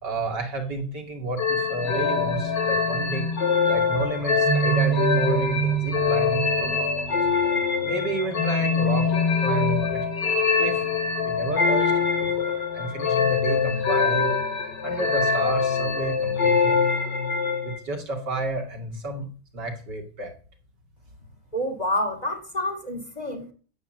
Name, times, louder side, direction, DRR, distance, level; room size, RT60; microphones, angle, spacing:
voice 1, 0.0-3.3 3.6-7.2 7.8-9.1 9.4-10.1 10.6-10.8 11.2-11.9 12.2-14.3 14.8-17.0 17.6-19.3 19.5-20.3, right 2 dB, 60° right, 2.8 m, -31 dB
sound 1, 1.4-17.8, left 4 dB, 60° left, 3.0 m, -23 dB
voice 2, 21.5-23.5, left 1 dB, 20° left, 2.7 m, -28 dB
13.5 x 8.2 x 7.5 m
omnidirectional pair, 2.1 m